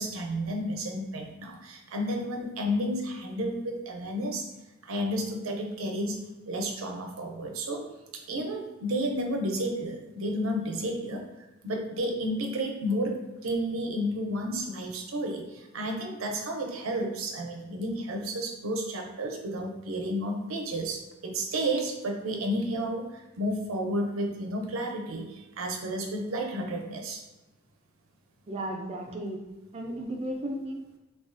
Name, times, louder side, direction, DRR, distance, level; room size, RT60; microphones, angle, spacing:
voice 1, 0.0-4.5 4.8-6.2 6.5-7.8 8.1-11.2 11.6-27.2, equal, 85° right, 2 dB, 0.5 m, -31 dB
voice 2, 28.5-29.4 29.7-31.0, right 1 dB, 30° right, 1 dB, 0.4 m, -35 dB
3.1 x 2.3 x 2.4 m, 1.1 s
head